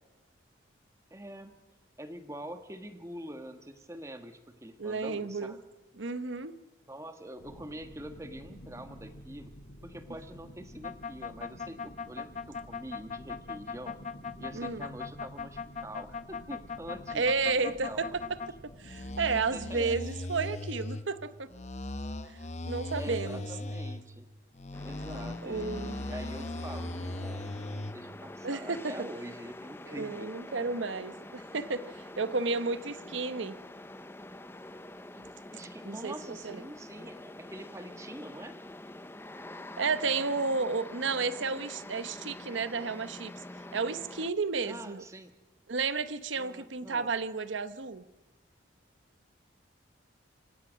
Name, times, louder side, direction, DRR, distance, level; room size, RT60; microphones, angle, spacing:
voice 1, 1.1-1.5 2.0-5.6 6.8-9.5 9.8-14.0 14.4-18.0 19.5-20.0 22.9-24.3 24.8-30.7 35.1-35.2 35.5-38.6 44.6-45.3 46.4-47.1, right 1 dB, 15° right, 8 dB, 1.4 m, -45 dB
voice 2, 4.8-5.5 6.0-6.5 14.5-14.9 17.1-18.1 18.8-21.5 22.2-22.4 22.7-23.5 25.4-26.0 28.4-28.9 29.9-33.6 35.2-35.3 35.8-36.6 39.8-43.3 43.7-45.0 45.7-48.0, right 4 dB, 80° right, 14 dB, 0.9 m, -32 dB
sound 1, 7.4-19.6, equal, 75° left, 6.1 m, -51 dB
sound 2, 10.8-18.5 18.8-21.0 21.5-24.0 24.5-27.9, left 3 dB, 35° left, 0.9 m, -38 dB
sound 3, 24.7-44.3, left 1 dB, 10° left, 0.6 m, -46 dB
25.5 x 17.0 x 6.4 m, 1.1 s
head